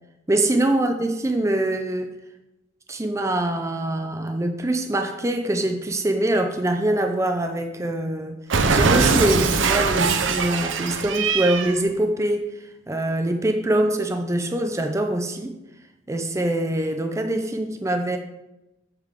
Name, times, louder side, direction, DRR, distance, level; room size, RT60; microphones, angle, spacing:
voice 1, 0.3-2.1 2.9-8.4 8.7-12.5 12.9-15.5 16.1-18.2, right 1 dB, 15° right, 5 dB, 0.5 m, -24 dB
Cat, 8.5-11.8, right 4 dB, 75° right, 0.7 m, -21 dB
8.1 x 3.6 x 6.6 m, 0.96 s
head